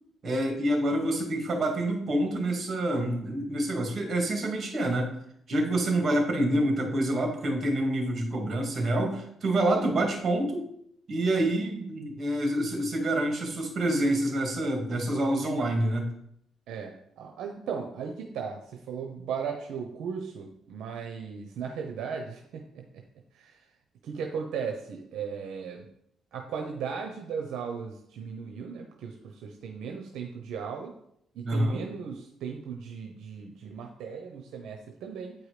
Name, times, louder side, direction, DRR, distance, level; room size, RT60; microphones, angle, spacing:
voice 1, 0.2-5.1 5.5-10.6 11.1-16.1 31.4-31.8, right 1 dB, 45° right, 2 dB, 2.5 m, -27 dB
voice 2, 16.7-23.0 23.3-23.7 24.0-25.8 26.3-30.9 31.3-35.3, right 6 dB, 80° right, 3 dB, 0.9 m, -37 dB
8.9 x 4.8 x 5.0 m, 0.72 s
cardioid pair, 90°, 0 cm